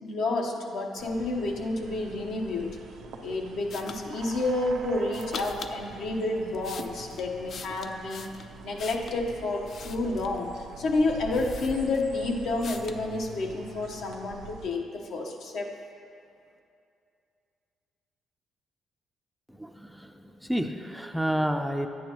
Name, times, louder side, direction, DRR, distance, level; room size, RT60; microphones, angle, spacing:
voice 1, 0.0-2.8 3.2-8.3 8.6-10.5 10.8-15.7, left 2 dB, 75° left, 1 dB, 1.0 m, -30 dB
sound 1, 1.0-14.7, right 4 dB, 85° right, 0.6 m, -45 dB
sound 2, 3.7-4.0 5.1-5.8 6.4-9.2 9.6-10.4 11.0-11.1 11.3-12.2 12.6-13.0, left 5 dB, 55° left, 0.4 m, -42 dB
voice 2, 19.6-20.1 20.4-21.9, equal, ahead, 5 dB, 0.4 m, -29 dB
10.0 x 8.9 x 3.0 m, 2.5 s
cardioid pair, 90°, 0 cm